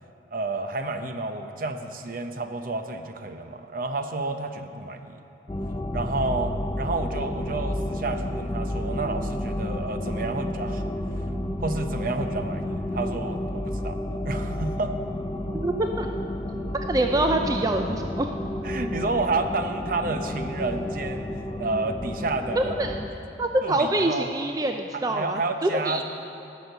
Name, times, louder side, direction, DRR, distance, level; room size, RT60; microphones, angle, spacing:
voice 1, 0.3-5.2 5.9-10.9 11.6-14.0 14.2-15.0 18.6-21.3 21.6-22.7 23.6-24.3 24.9-26.0, right 3 dB, 50° right, 7 dB, 0.8 m, -30 dB
sound 1, 5.5-23.1, left 1 dB, 25° left, 0.6 m, -31 dB
voice 2, 15.5-16.1 16.9-18.3 22.6-23.0 23.4-26.0, right 1 dB, 20° right, 4 dB, 0.4 m, -25 dB
18.5 x 6.5 x 6.7 m, 2.9 s
head